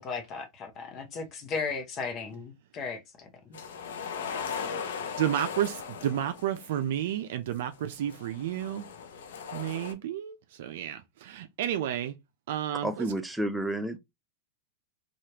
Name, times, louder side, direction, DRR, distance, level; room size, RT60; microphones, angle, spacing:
voice 1, 0.0-3.3, left 5 dB, 35° left, 0.7 m, -36 dB
sound 1, 3.5-6.8 7.7-9.9, left 6 dB, 80° left, 0.6 m, -38 dB
voice 2, 5.2-8.9 9.5-12.2 12.5-13.1, right 11 dB, 70° right, 0.4 m, -31 dB
voice 3, 12.8-14.0, right 1 dB, 5° right, 0.5 m, -30 dB
3.1 x 2.3 x 2.9 m
hypercardioid pair, 125°, 0 cm